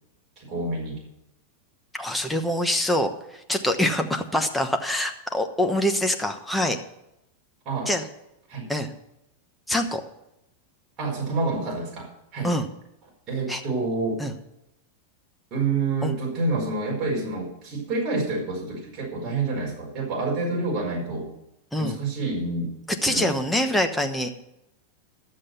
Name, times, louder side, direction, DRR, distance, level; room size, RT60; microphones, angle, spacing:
voice 1, 0.4-1.0 7.6-7.9 8.5-8.7 11.0-12.5 13.3-14.2 15.5-21.3 21.8-22.7 23.0-23.3, right 3 dB, 25° right, -3 dB, 4.7 m, -28 dB
voice 2, 1.9-6.8 7.9-8.0 8.7-8.9 9.7-10.0 12.4-12.7 13.5-13.6 14.2-14.3 16.0-16.1 21.7-22.0 22.9-24.3, left 1 dB, 5° left, 5 dB, 1.0 m, -25 dB
12.0 x 7.5 x 6.8 m, 0.86 s
supercardioid pair, 155°, 0 cm